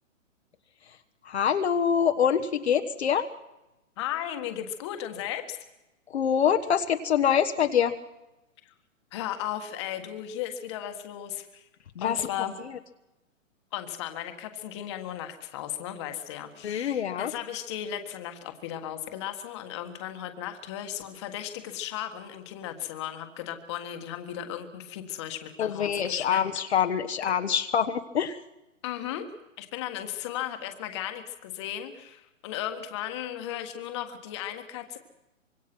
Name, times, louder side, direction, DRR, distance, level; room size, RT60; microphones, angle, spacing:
voice 1, 1.2-3.3 6.1-8.0 11.9-12.2 16.6-17.3 25.6-28.4, left 8 dB, 50° left, 6 dB, 1.3 m, -25 dB
voice 2, 4.0-5.6 8.6-8.7 9.1-11.7 12.0-12.5 13.7-26.4 28.8-29.3 29.6-35.0, left 11 dB, 20° left, 6 dB, 1.6 m, -36 dB
25.0 x 23.0 x 6.1 m, 0.96 s
hypercardioid pair, 170°, 40 cm